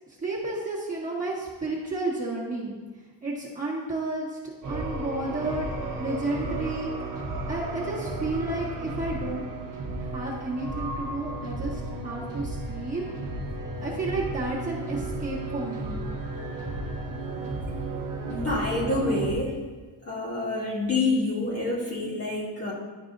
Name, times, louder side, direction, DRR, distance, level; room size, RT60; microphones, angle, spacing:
voice 1, 0.2-2.7 3.2-4.4 4.7-5.7 6.0-6.9 7.5-9.5 10.0-13.0 13.8-16.0, right 2 dB, 15° right, -7 dB, 1.6 m, -31 dB
sound 1, 4.6-19.3, right 2 dB, 45° right, 1.2 m, -34 dB
voice 2, 18.3-19.5 20.1-22.7, left 2 dB, 30° left, -5 dB, 1.8 m, -27 dB
11.0 x 4.7 x 2.6 m, 1.3 s
cardioid pair, 150°, 46 cm